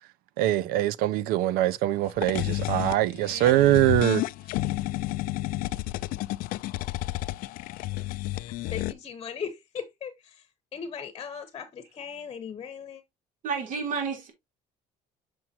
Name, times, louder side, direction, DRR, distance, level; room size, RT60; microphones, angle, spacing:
voice 1, 0.4-4.2, right 14 dB, 85° right, 0.5 m, -23 dB
sound 1, 2.1-8.9, left 17 dB, 70° left, 0.4 m, -31 dB
voice 2, 8.3-13.0, left 7 dB, 30° left, 1.1 m, -39 dB
voice 3, 13.4-14.3, right 5 dB, 55° right, 3.5 m, -30 dB
7.2 x 6.2 x 2.9 m
cardioid pair, 150°, 15 cm